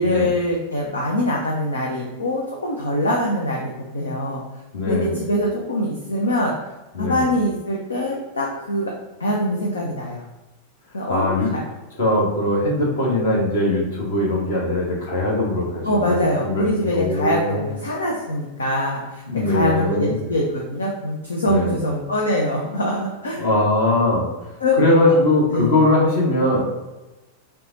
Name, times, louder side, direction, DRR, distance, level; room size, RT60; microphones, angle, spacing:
voice 1, 0.0-4.4 4.8-6.5 7.0-8.9 9.2-10.2 10.9-11.6 15.8-23.5 24.6-24.8 25.5-25.7, left 1 dB, 75° left, -1 dB, 0.7 m, -23 dB
voice 2, 4.7-5.2 6.9-7.3 11.1-11.5 12.0-16.6 16.9-17.7 19.3-20.2 21.5-21.8 23.4-24.3 24.8-26.6, left 2 dB, 55° left, -3 dB, 1.6 m, -20 dB
5.6 x 2.4 x 3.9 m, 1.1 s
figure-of-eight pair, 90°, 0 cm